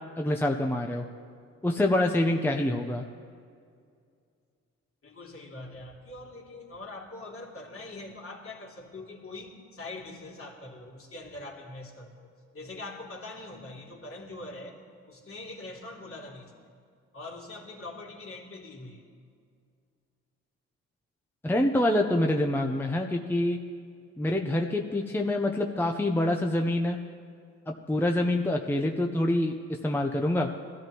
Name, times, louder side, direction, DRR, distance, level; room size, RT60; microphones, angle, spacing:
voice 1, 0.2-1.0 1.6-3.0 21.4-23.6 24.2-27.0 27.7-29.5 29.8-30.5, left 1 dB, 5° left, 2 dB, 0.8 m, -26 dB
voice 2, 5.0-14.8 15.1-16.7 17.1-19.0, left 2 dB, 45° left, -2 dB, 2.9 m, -43 dB
21.0 x 14.0 x 3.1 m, 2.2 s
cardioid pair, 90°, 30 cm